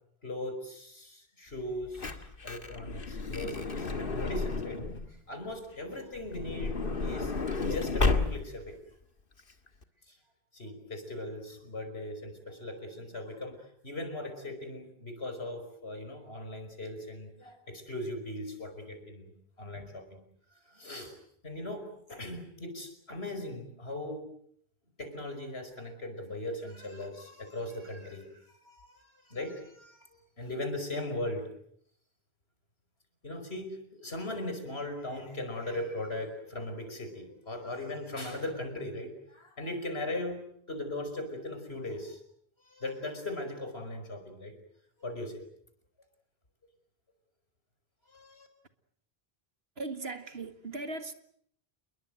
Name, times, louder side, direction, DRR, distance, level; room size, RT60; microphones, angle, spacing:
voice 1, 0.2-4.8 5.1-7.3 7.6-8.8 10.1-10.2 10.5-19.3 19.6-20.2 20.7-21.2 21.4-24.3 25.0-31.4 33.2-42.2 42.6-44.5 45.0-45.4 48.1-48.5, left 1 dB, 80° left, 5.6 m, -39 dB
Truck / Door, 1.6-5.1 6.2-8.7 9.4-9.5 9.7-9.8, left 3 dB, 60° left, 2.0 m, -32 dB
voice 2, 49.8-51.1, right 3 dB, 80° right, 2.1 m, -38 dB
28.5 x 22.0 x 7.9 m
omnidirectional pair, 1.0 m